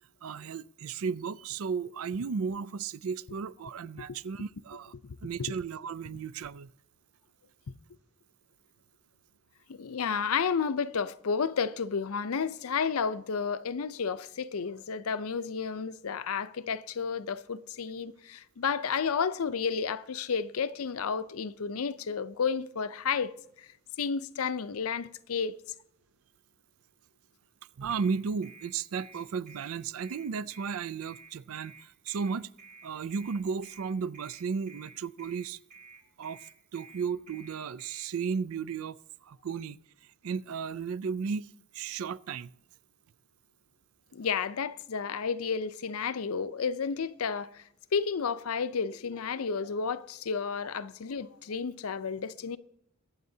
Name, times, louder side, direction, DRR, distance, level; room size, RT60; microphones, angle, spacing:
voice 1, 0.2-4.9 5.2-6.7 27.8-32.5 32.8-35.6 36.2-36.4 36.7-39.0 39.2-39.8 40.2-42.5, right 6 dB, 80° right, 0.4 m, -34 dB
voice 2, 9.7-23.3 23.6-23.7 24.0-25.5 44.1-47.6 47.9-52.6, left 6 dB, 85° left, 0.6 m, -31 dB
sound 1, 27.9-38.1, right 4 dB, 35° right, 3.5 m, -52 dB
22.5 x 9.4 x 2.8 m
head